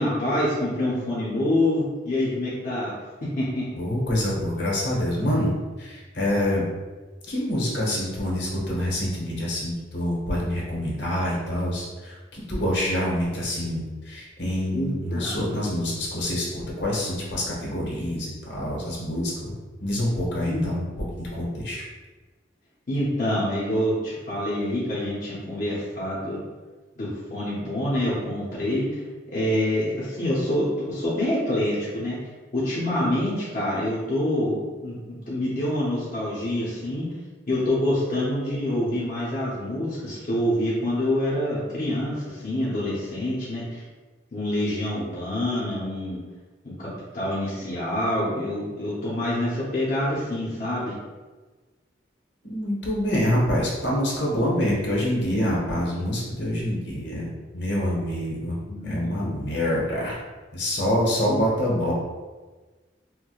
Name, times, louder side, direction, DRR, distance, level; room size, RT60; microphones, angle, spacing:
voice 1, 0.0-2.9 3.4-3.6 14.7-15.3 20.5-20.6 22.9-26.4 27.0-29.0 29.3-32.2 32.5-35.0 35.3-37.0 37.5-43.8 44.3-46.2 46.6-46.9 47.1-50.9 58.6-59.4 61.3-61.4, left 1 dB, 45° left, -8 dB, 0.7 m, -26 dB
voice 2, 3.8-5.5 5.8-6.6 7.3-19.5 19.8-20.9 21.2-21.8 52.4-57.3 57.5-60.2 60.5-61.9, left 1 dB, 65° left, -5 dB, 0.9 m, -26 dB
4.5 x 2.1 x 2.3 m, 1.3 s
head